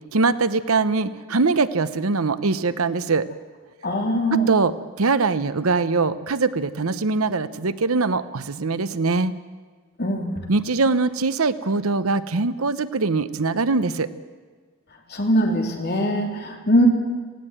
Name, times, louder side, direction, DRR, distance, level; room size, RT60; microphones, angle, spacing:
voice 1, 0.1-3.3 4.3-9.3 10.5-14.1, right 3 dB, 85° right, 14 dB, 0.9 m, -22 dB
voice 2, 3.8-4.5 10.0-10.4 15.1-16.9, equal, 50° left, 2 dB, 3.2 m, -21 dB
18.0 x 16.5 x 9.0 m, 1.5 s
head